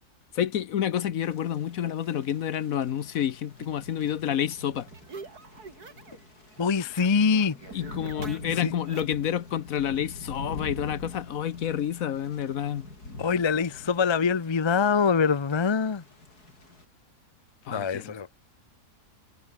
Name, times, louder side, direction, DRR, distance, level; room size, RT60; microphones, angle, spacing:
voice 1, 0.3-4.9 7.7-12.9 17.7-18.1, left 10 dB, 65° left, 1.3 m, -29 dB
Thunder / Rain, 1.2-16.8, left 2 dB, 85° left, 6.6 m, -45 dB
sound 1, 3.6-6.3 6.5-9.3, right 4 dB, 85° right, 3.4 m, -46 dB
voice 2, 6.6-7.6 8.6-8.7 13.2-16.0 17.7-18.3, left 5 dB, 30° left, 0.5 m, -24 dB
omnidirectional pair, 1.6 m